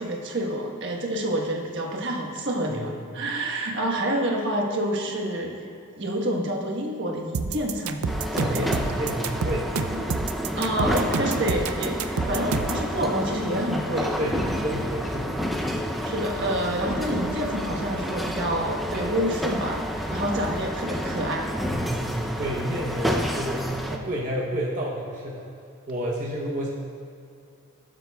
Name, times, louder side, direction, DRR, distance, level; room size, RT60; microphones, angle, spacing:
voice 1, 0.0-5.5 5.9-8.0 8.3-8.7 10.5-12.0 12.3-14.2 16.0-21.5, right 1 dB, 55° right, 0 dB, 1.3 m, -28 dB
voice 2, 2.7-3.2 8.3-9.7 14.2-15.3 15.7-16.0 21.6-25.5 25.9-26.7, equal, 35° right, -5 dB, 0.9 m, -30 dB
sound 1, 7.3-12.9, right 4 dB, 85° right, 0.5 m, -28 dB
sound 2, 8.1-24.0, equal, ahead, 0.5 m, -30 dB
19.0 x 7.5 x 2.3 m, 2.6 s
head